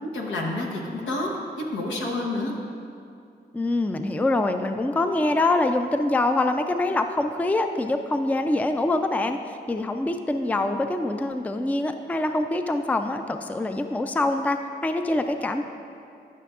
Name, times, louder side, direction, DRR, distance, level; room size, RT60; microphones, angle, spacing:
voice 1, 0.0-1.3 1.6-2.5, left 2 dB, 85° left, -1 dB, 1.0 m, -29 dB
voice 2, 3.5-15.6, left 2 dB, 10° left, 7 dB, 0.4 m, -25 dB
11.5 x 5.8 x 2.4 m, 2.5 s
supercardioid pair, 50°, 19 cm